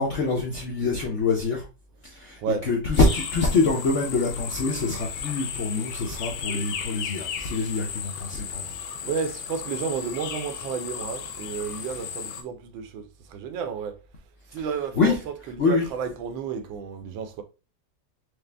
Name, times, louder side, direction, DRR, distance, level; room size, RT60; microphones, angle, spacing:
voice 1, 0.0-1.7 2.0-2.4 2.7-8.7 15.0-15.2 15.6-15.8, left 3 dB, 65° left, 0.7 m, -25 dB
sound 1, 2.9-12.4, left 7 dB, 80° left, 1.4 m, -35 dB
voice 2, 8.7-14.0 14.5-17.4, right 6 dB, 85° right, 1.4 m, -32 dB
4.9 x 2.0 x 3.3 m
omnidirectional pair, 2.1 m